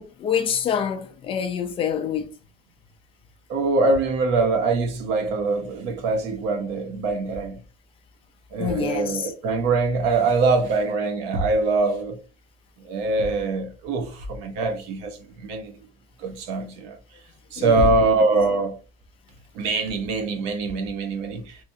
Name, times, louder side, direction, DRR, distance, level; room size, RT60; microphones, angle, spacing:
voice 1, 0.0-2.3 8.6-9.3 17.6-17.9, left 8 dB, 30° left, 0.5 m, -26 dB
voice 2, 3.5-7.6 8.5-12.2 12.8-15.7 16.2-17.0 17.5-18.8 19.5-21.6, right 3 dB, 75° right, 0.9 m, -23 dB
3.3 x 2.9 x 2.7 m
cardioid pair, 170°, 18 cm